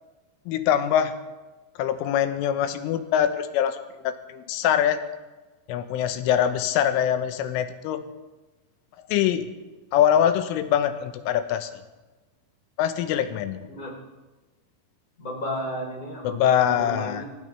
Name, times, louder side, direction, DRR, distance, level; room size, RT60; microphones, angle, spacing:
voice 1, 0.5-1.1 1.8-5.0 5.7-8.0 9.1-9.5 9.9-11.7 12.8-13.6 16.3-17.3, left 10 dB, 80° left, 9 dB, 3.4 m, -23 dB
voice 2, 15.2-17.2, equal, 20° left, -1 dB, 2.6 m, -33 dB
25.0 x 16.0 x 3.3 m, 1.2 s
omnidirectional pair, 6.0 m